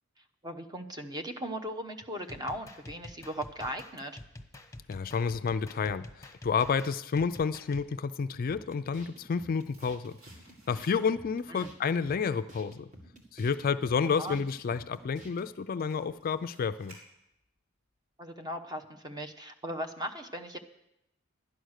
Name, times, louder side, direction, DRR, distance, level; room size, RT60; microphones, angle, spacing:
voice 1, 0.4-4.2 11.5-11.7 14.0-14.4 18.2-20.6, equal, 20° right, 6 dB, 0.9 m, -38 dB
sound 1, 2.2-7.9, left 1 dB, 15° left, 1.0 m, -48 dB
voice 2, 4.9-10.2 10.7-12.9 13.3-17.0, left 5 dB, 45° left, 12 dB, 0.4 m, -30 dB
sound 2, 8.5-15.5, right 1 dB, 40° right, 2.0 m, -52 dB
sound 3, 9.4-11.3 11.7-17.6 17.9-18.0, right 1 dB, 85° right, 4.3 m, -60 dB
12.0 x 10.5 x 6.5 m, 0.85 s
head